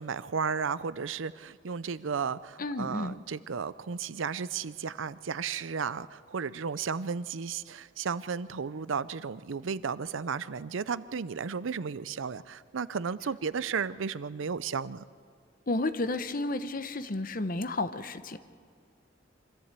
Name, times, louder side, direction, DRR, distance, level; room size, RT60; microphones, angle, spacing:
voice 1, 0.0-15.0, right 6 dB, 90° right, 17 dB, 0.6 m, -34 dB
voice 2, 2.6-3.2 15.7-18.5, left 2 dB, 45° left, 11 dB, 0.9 m, -32 dB
24.5 x 14.0 x 8.2 m, 2.1 s
head